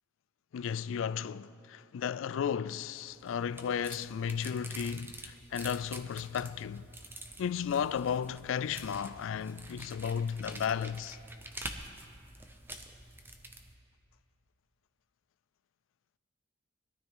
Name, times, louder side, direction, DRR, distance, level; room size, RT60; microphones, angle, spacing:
voice 1, 0.5-6.9 7.4-11.2, left 7 dB, 65° left, 0.3 m, -34 dB
sound 1, 3.0-13.7, right 1 dB, 10° right, 0.7 m, -47 dB
21.5 x 12.5 x 3.7 m
head